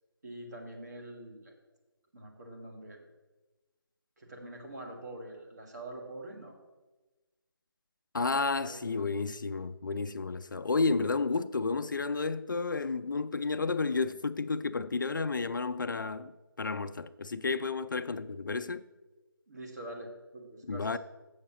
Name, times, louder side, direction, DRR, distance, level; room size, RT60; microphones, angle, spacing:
voice 1, 0.2-1.6 2.1-3.1 4.2-6.6 8.5-9.1 19.5-21.0, right 1 dB, 45° right, 1.8 m, -45 dB
voice 2, 8.1-16.3 16.6-18.8 20.7-21.0, left 4 dB, 55° left, 0.4 m, -31 dB
7.1 x 5.6 x 7.4 m
figure-of-eight pair, 170°, 12 cm